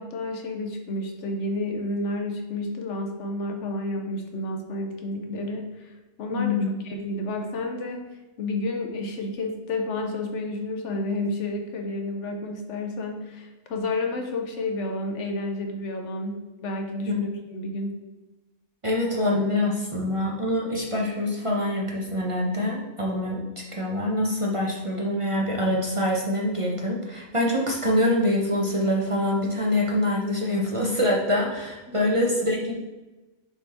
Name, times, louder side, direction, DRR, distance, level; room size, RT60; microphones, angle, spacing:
voice 1, 0.0-8.0 8.4-18.0 31.9-32.2, left 2 dB, 70° left, 3 dB, 1.1 m, -31 dB
voice 2, 6.3-6.7 17.1-17.2 18.8-23.4 23.7-32.7, left 1 dB, 30° right, -3 dB, 0.8 m, -25 dB
5.8 x 3.9 x 4.2 m, 1.1 s
omnidirectional pair, 1.3 m